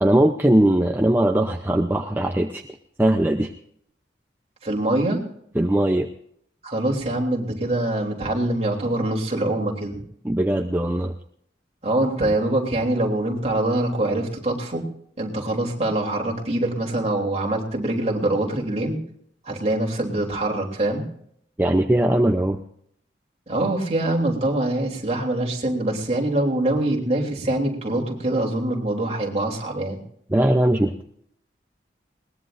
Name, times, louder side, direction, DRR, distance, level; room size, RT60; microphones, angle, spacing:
voice 1, 0.0-2.6 3.0-3.5 5.5-6.1 10.2-11.1 21.6-22.6 30.3-31.1, right 1 dB, 10° right, 3 dB, 0.6 m, -20 dB
voice 2, 4.6-5.2 6.6-10.0 11.8-14.8 15.2-19.0 19.4-21.0 23.5-30.0, right 1 dB, 35° right, -1 dB, 3.2 m, -24 dB
21.5 x 19.5 x 2.6 m, 0.68 s
head